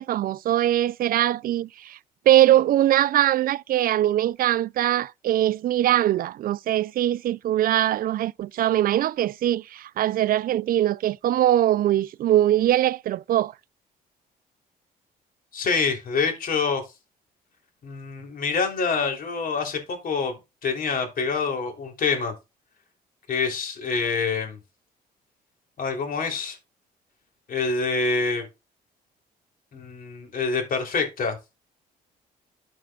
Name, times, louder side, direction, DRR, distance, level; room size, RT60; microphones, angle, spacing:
voice 1, 0.0-2.0 2.3-13.5, right 13 dB, 60° right, 0.4 m, -22 dB
voice 2, 15.5-16.8 17.8-20.4 20.6-22.3 23.3-24.6 25.8-26.6 27.5-28.5 29.7-31.4, left 4 dB, 60° left, 3.4 m, -26 dB
12.5 x 6.1 x 2.4 m
cardioid pair, 75°, 17 cm